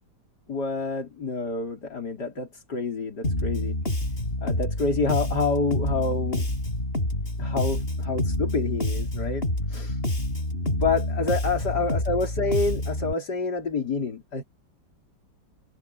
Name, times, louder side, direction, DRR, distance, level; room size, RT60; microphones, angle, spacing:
voice 1, 0.5-3.8 4.4-6.5 7.4-10.0 10.7-14.4, left 3 dB, 60° left, 4.7 m, -28 dB
Bass guitar, 3.2-13.1, left 1 dB, 30° left, 8.1 m, -28 dB
omnidirectional pair, 2.0 m